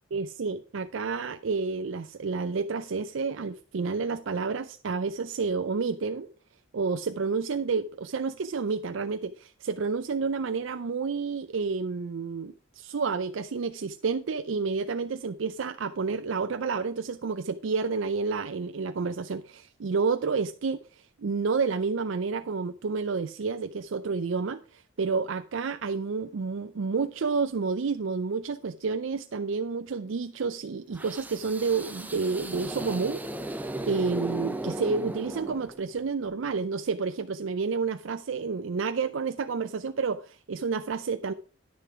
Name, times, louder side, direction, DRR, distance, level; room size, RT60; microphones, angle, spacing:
voice 1, 0.1-6.3 6.7-20.8 21.2-33.2 33.9-41.3, right 4 dB, 70° right, 0.5 m, -30 dB
sound 1, 30.9-36.0, right 1 dB, 10° right, 0.6 m, -36 dB
10.5 x 6.7 x 4.7 m
head